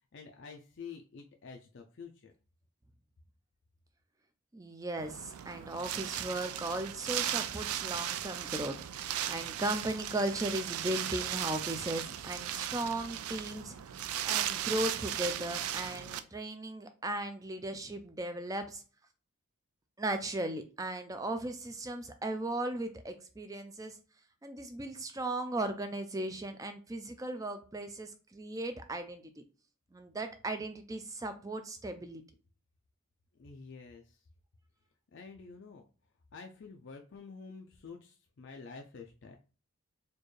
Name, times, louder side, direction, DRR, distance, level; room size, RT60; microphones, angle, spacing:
voice 1, 0.1-2.3 33.3-34.2 35.1-35.8 36.3-39.4, left 5 dB, 55° left, 3 dB, 0.4 m, -49 dB
voice 2, 4.5-18.8 20.0-24.0 24.4-29.4 29.9-32.2, right 1 dB, 15° right, 7 dB, 0.4 m, -37 dB
Wind, 5.0-16.2, right 11 dB, 90° right, 0.4 m, -37 dB
4.3 x 2.5 x 3.1 m, 0.36 s
head